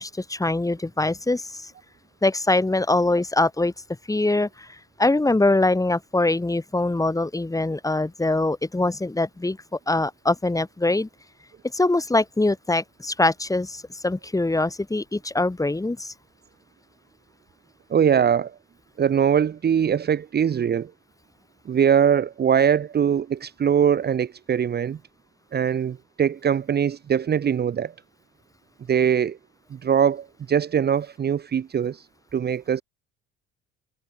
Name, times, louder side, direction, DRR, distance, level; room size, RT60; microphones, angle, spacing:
voice 1, 0.0-1.7 2.2-3.7 4.1-4.7 5.0-11.1 11.7-16.1, left 2 dB, 10° left, 3.5 m, -23 dB
voice 2, 17.9-18.5 19.0-20.9 21.7-25.0 25.5-27.9 28.9-29.4 29.7-32.0 32.3-32.8, right 8 dB, 35° right, 1.2 m, -22 dB
hypercardioid pair, 75°, 29 cm